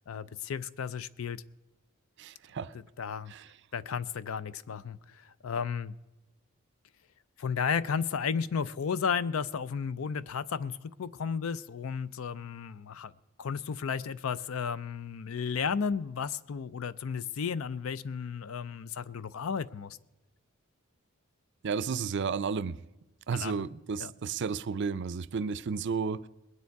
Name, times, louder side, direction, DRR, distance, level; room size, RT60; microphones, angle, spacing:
voice 1, 0.1-1.4 3.0-3.3 3.7-5.9 7.4-13.1 13.4-20.0 23.3-23.6 24.0-24.1, left 6 dB, 70° left, 0.4 m, -33 dB
voice 2, 2.2-2.7 3.3-3.5 21.6-22.8 23.3-26.3, right 5 dB, 55° right, 0.5 m, -32 dB
21.0 x 9.7 x 4.6 m
head